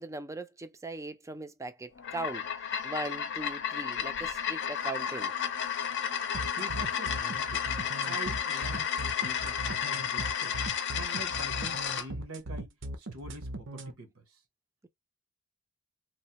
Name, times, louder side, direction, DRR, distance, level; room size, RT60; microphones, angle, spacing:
voice 1, 0.0-2.5 2.8-5.3, right 2 dB, 15° right, 0.4 m, -39 dB
sound 1, 2.0-12.1, left 8 dB, 55° left, 0.5 m, -32 dB
sound 2, 6.3-13.9, right 1 dB, 60° right, 0.6 m, -39 dB
voice 2, 6.4-7.6 8.0-10.6 10.9-12.7 13.0-14.4, right 2 dB, 75° right, 1.0 m, -45 dB
3.1 x 2.1 x 2.8 m
head